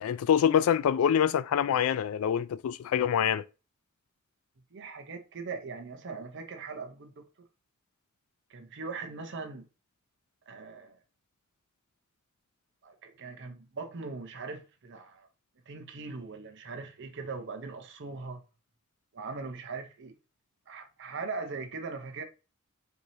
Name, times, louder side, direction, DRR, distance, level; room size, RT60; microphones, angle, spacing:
voice 1, 0.0-3.4, left 8 dB, 75° left, 0.3 m, -25 dB
voice 2, 4.7-7.2 8.5-9.6 10.5-11.0 12.8-15.3 15.7-18.4 19.1-20.1 20.7-22.2, right 4 dB, 60° right, 0.7 m, -40 dB
4.7 x 2.7 x 2.7 m
head